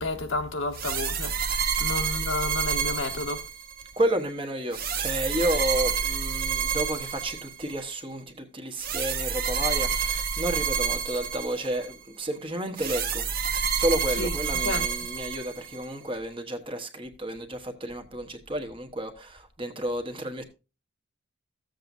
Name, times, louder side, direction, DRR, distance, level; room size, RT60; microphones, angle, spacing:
voice 1, 0.0-3.4 14.2-14.3 14.6-14.9, left 2 dB, 75° left, 1.2 m, -31 dB
sound 1, 0.7-3.9 4.7-7.8 8.8-11.9 12.8-15.9, right 6 dB, 45° right, 0.9 m, -29 dB
voice 2, 4.0-13.3 13.7-20.4, right 1 dB, 25° right, 1.1 m, -31 dB
14.5 x 7.7 x 2.6 m
head